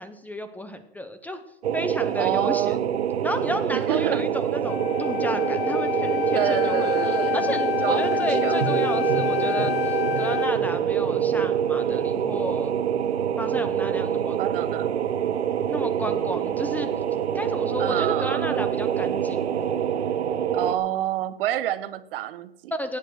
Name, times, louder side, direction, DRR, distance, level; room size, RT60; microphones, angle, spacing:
voice 1, 0.0-1.4 1.7-2.9 3.2-12.7 13.4-14.4 15.7-16.9 17.3-19.6 22.8-23.0, equal, 5° left, 10 dB, 0.6 m, -32 dB
sound 1, 1.6-20.8, right 9 dB, 85° right, 0.9 m, -25 dB
voice 2, 2.2-2.8 3.7-4.2 6.3-7.4 7.8-8.6 11.9-12.1 14.4-14.9 17.8-18.6 20.5-22.7, right 13 dB, 60° right, 14 dB, 0.9 m, -28 dB
Wind instrument woodwind instrument, 4.6-10.6, left 11 dB, 50° left, 0.7 m, -28 dB
16.0 x 8.8 x 4.6 m, 0.81 s
hypercardioid pair, 120°, 32 cm